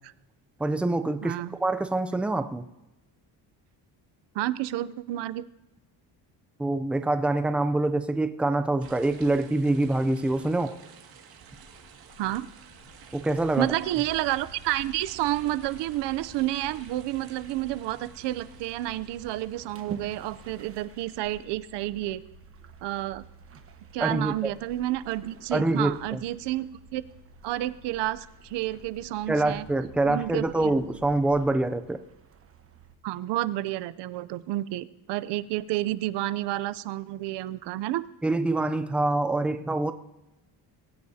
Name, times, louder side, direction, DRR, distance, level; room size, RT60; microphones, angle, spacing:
voice 1, 0.6-2.7 6.6-10.8 13.1-13.7 24.0-24.5 25.5-26.2 29.3-32.0 38.2-39.9, right 2 dB, 5° right, 0.4 m, -25 dB
voice 2, 4.3-5.4 12.2-12.5 13.6-22.2 22.8-23.2 23.9-27.0 27.4-29.7 30.1-30.7 33.0-38.0, right 15 dB, 80° right, 0.7 m, -30 dB
sound 1, 8.8-20.6, right 7 dB, 60° right, 2.2 m, -51 dB
sound 2, 11.5-31.4, left 4 dB, 75° left, 3.8 m, -53 dB
sound 3, 13.5-33.0, right 7 dB, 35° right, 1.1 m, -50 dB
22.0 x 16.0 x 2.8 m
cardioid pair, 155°, 41 cm